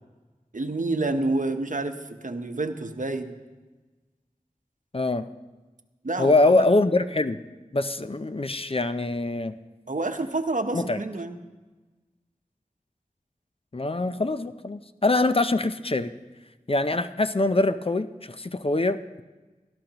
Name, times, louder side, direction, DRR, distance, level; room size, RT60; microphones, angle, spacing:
voice 1, 0.5-1.9 2.2-3.3 6.0-6.6 9.9-11.4, right 2 dB, 60° right, 7 dB, 0.9 m, -28 dB
voice 2, 4.9-5.3 6.2-7.4 7.7-9.6 10.7-11.0 13.7-16.1 16.7-19.2, left 2 dB, 40° left, 11 dB, 0.5 m, -24 dB
17.5 x 13.0 x 2.9 m, 1.2 s
wide cardioid pair, 45°, 15 cm